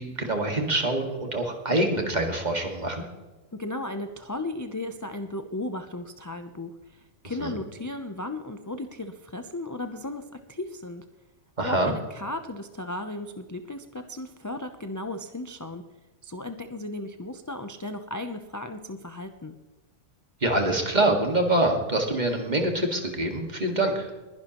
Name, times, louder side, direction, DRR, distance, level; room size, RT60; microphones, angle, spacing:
voice 1, 0.0-3.0 7.4-7.6 11.6-11.9 20.4-24.1, right 1 dB, 35° right, 3 dB, 2.0 m, -25 dB
voice 2, 3.5-11.0 11.6-15.8 16.2-19.5, left 2 dB, 20° left, 6 dB, 0.5 m, -35 dB
21.5 x 11.0 x 3.0 m, 1.2 s
omnidirectional pair, 1.3 m